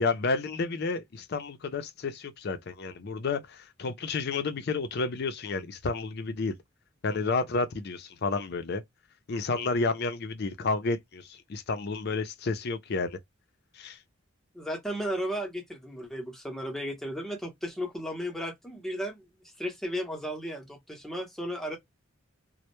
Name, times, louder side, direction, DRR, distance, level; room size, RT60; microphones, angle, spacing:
voice 1, 0.0-6.5 7.0-8.8 9.3-13.2 13.7-14.0, left 3 dB, 50° left, 0.5 m, -31 dB
voice 2, 14.5-19.2 19.6-21.8, equal, ahead, 0.7 m, -34 dB
2.1 x 2.1 x 2.9 m
head